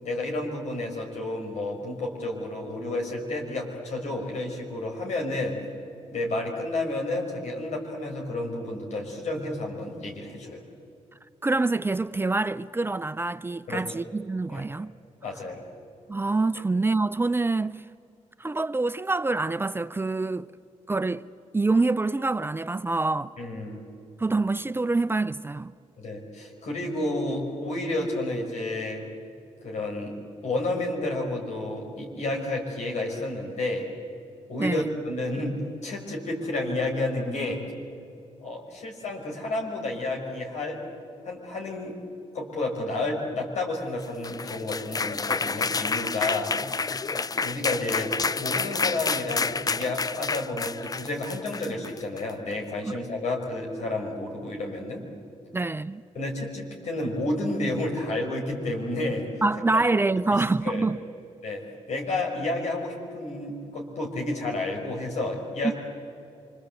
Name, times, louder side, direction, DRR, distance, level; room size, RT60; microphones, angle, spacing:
voice 1, 0.0-5.6 6.1-10.6 13.7-13.8 14.5-14.6 15.2-15.6 16.5-16.6 23.4-23.9 26.0-29.0 29.6-33.9 34.5-35.6 35.8-37.6 38.4-40.8 41.2-42.0 42.3-46.6 47.4-55.1 56.2-59.4 59.7-59.8 60.3-60.9 61.4-61.6 61.9-65.7, left 2 dB, 70° left, 5.7 m, -31 dB
voice 2, 11.4-14.9 16.1-17.9 18.4-20.5 20.9-21.3 21.5-23.3 24.2-25.7 34.6-34.9 52.8-52.9 55.5-56.0 59.4-61.0 65.6-65.7, right 3 dB, 20° right, 0.5 m, -26 dB
sound 1, 44.0-52.3, left 4 dB, 30° left, 0.5 m, -29 dB
27.0 x 24.0 x 8.1 m
cardioid pair, 70°, 12 cm